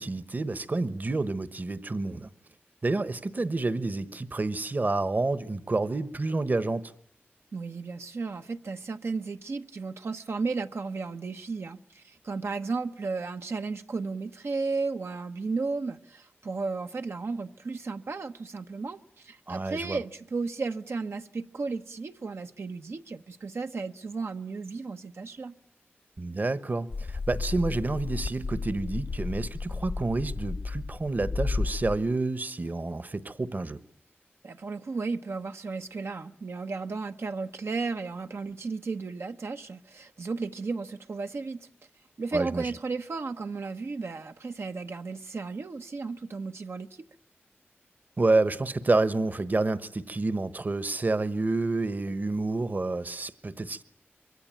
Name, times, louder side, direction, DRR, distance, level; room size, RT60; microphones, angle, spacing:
voice 1, 0.0-2.3 2.8-6.9 19.5-20.0 26.2-33.8 42.3-42.6 48.2-53.8, right 3 dB, 45° right, 1.2 m, -29 dB
voice 2, 7.5-25.5 34.4-41.7 42.2-47.1, right 4 dB, 80° right, 1.0 m, -34 dB
sound 1, 26.9-32.0, left 4 dB, 70° left, 1.1 m, -33 dB
26.0 x 23.5 x 9.0 m
wide cardioid pair, 90°, 4 cm